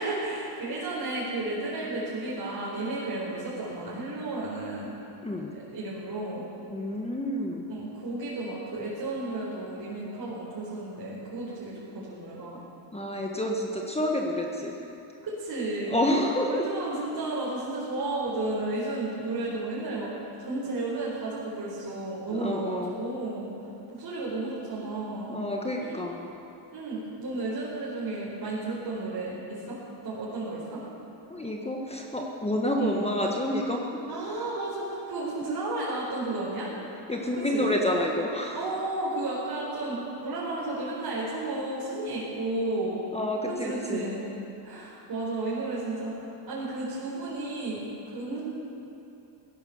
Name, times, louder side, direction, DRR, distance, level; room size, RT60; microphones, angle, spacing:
voice 1, 0.0-4.9 5.5-6.4 7.7-12.6 15.2-16.0 16.5-20.1 20.4-23.5 23.9-25.4 25.8-26.0 26.7-29.8 30.0-30.8 32.7-33.1 34.1-36.7 37.3-37.7 38.5-43.0 43.5-44.2 44.6-46.1 46.5-48.4, right 2 dB, 45° right, -7 dB, 4.5 m, -33 dB
voice 2, 5.2-5.5 6.7-7.7 12.9-14.8 15.9-16.6 22.3-23.0 25.3-26.3 31.3-33.8 37.1-38.6 43.1-44.0, left 1 dB, 15° left, 0 dB, 1.4 m, -29 dB
17.0 x 11.5 x 7.0 m, 3.0 s
cardioid pair, 105°, 46 cm